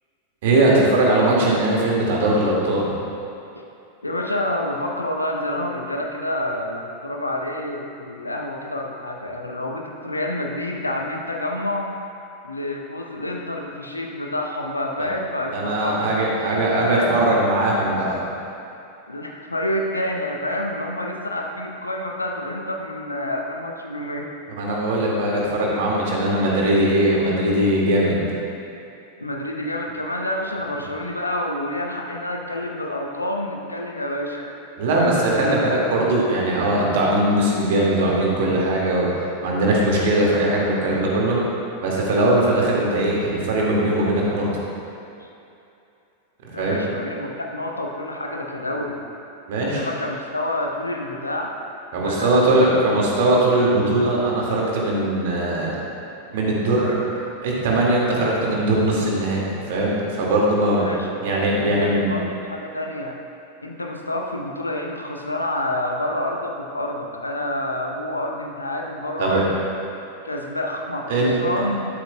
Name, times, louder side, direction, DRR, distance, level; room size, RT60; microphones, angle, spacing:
voice 1, 0.4-3.0 15.5-18.2 24.6-28.2 34.8-39.1 39.4-41.4 41.8-44.6 46.4-46.8 49.5-49.8 51.9-55.7 56.3-56.9 57.4-60.9 61.2-62.1 69.2-69.4 71.1-71.3, right 1 dB, 55° right, -4 dB, 2.0 m, -20 dB
voice 2, 4.0-11.9 12.4-17.2 19.1-24.3 26.4-26.5 29.2-34.5 45.2-45.3 46.5-49.0 49.6-51.5 52.0-52.8 60.8-63.2 63.6-69.7 70.2-71.9, left 1 dB, 80° left, 1 dB, 0.7 m, -28 dB
13.0 x 8.1 x 2.3 m, 2.7 s
figure-of-eight pair, 90°, 0 cm